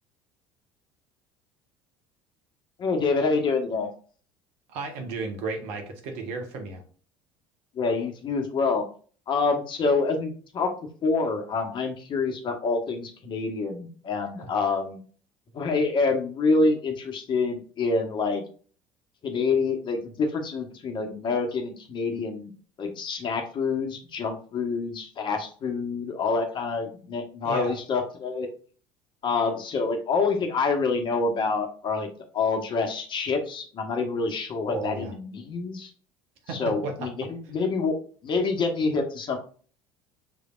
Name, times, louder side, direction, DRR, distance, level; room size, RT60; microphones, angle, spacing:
voice 1, 2.8-3.9 7.7-8.9 9.3-10.7 11.0-15.0 15.5-18.4 19.2-22.5 22.8-28.5 29.2-32.1 32.3-35.9 36.5-38.0 38.2-39.4, left 4 dB, 40° left, 4 dB, 1.1 m, -27 dB
voice 2, 4.7-6.8 14.4-14.5 27.4-27.8 34.7-35.1 36.5-37.1, right 3 dB, 65° right, 4 dB, 1.1 m, -33 dB
6.0 x 3.3 x 2.4 m, 0.42 s
hypercardioid pair, 65°, 12 cm